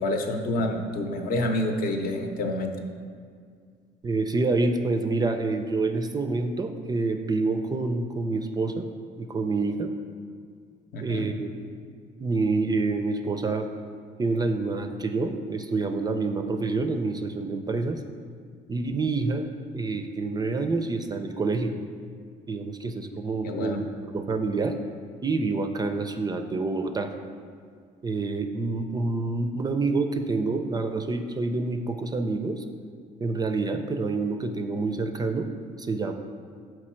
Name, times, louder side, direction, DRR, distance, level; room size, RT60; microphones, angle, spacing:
voice 1, 0.0-2.8 10.9-11.3 23.4-23.8, left 1 dB, 60° left, 4 dB, 0.8 m, -28 dB
voice 2, 4.0-8.9 9.2-9.9 11.0-11.5 12.2-13.7 14.2-18.0 18.7-21.8 22.5-24.8 25.2-27.1 28.0-32.6 33.2-36.1, right 3 dB, 25° right, 6 dB, 0.4 m, -27 dB
6.2 x 4.6 x 4.3 m, 2.1 s
cardioid pair, 110°, 17 cm